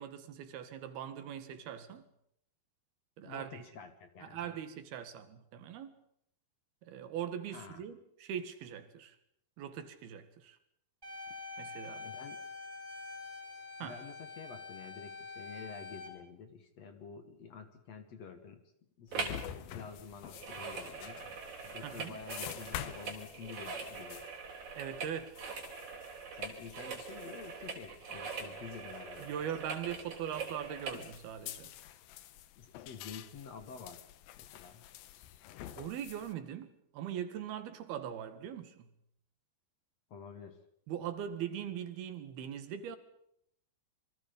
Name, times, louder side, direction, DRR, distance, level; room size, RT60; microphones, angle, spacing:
voice 1, 0.0-2.1 3.2-3.7 4.2-6.0 6.8-9.2 9.6-10.6 11.6-12.1 13.8-14.0 21.8-22.2 24.8-25.4 29.2-31.7 35.8-38.9 40.9-43.0, right 9 dB, 90° right, 3.6 m, -41 dB
voice 2, 3.2-4.6 7.5-7.8 12.0-12.4 13.8-18.6 19.0-21.2 21.7-24.3 26.3-29.3 32.6-34.1 34.4-34.9 40.1-40.6, left 5 dB, 55° left, 2.4 m, -49 dB
sound 1, 11.0-16.1, left 3 dB, 10° right, 6.2 m, -46 dB
sound 2, 19.1-36.3, left 11 dB, 75° left, 2.8 m, -49 dB
sound 3, 19.1-19.5 19.7-31.0 31.6-31.7, right 5 dB, 55° right, 4.5 m, -43 dB
27.0 x 24.0 x 5.3 m
omnidirectional pair, 4.3 m